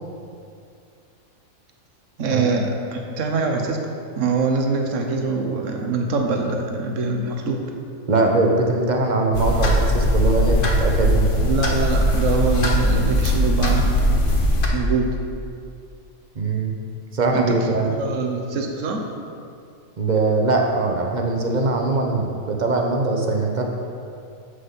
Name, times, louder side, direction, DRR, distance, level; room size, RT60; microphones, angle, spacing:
voice 1, 2.2-3.8 4.1-7.6 11.4-14.0 14.7-15.1 17.3-19.1, right 4 dB, 65° right, 3 dB, 1.3 m, -24 dB
voice 2, 8.1-11.4 16.3-16.7 17.1-17.9 20.0-23.6, right 3 dB, 35° right, 1 dB, 1.0 m, -21 dB
sound 1, 9.3-14.7, equal, 45° left, 1.1 m, -19 dB
7.5 x 6.6 x 5.6 m, 2.4 s
omnidirectional pair, 1.4 m